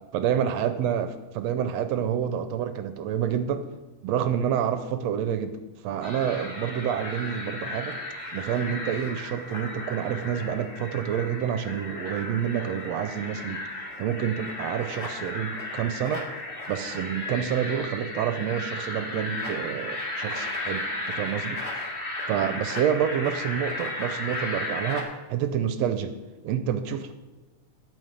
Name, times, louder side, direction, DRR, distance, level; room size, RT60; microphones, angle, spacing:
voice 1, 0.1-3.7 4.0-8.0 8.3-13.6 14.0-16.3 16.7-21.6 22.3-26.1 26.4-27.1, right 9 dB, 75° right, 10 dB, 1.7 m, -28 dB
sound 1, 6.0-25.0, left 2 dB, 20° left, 1.7 m, -35 dB
12.5 x 5.6 x 8.9 m, 1.2 s
omnidirectional pair, 3.3 m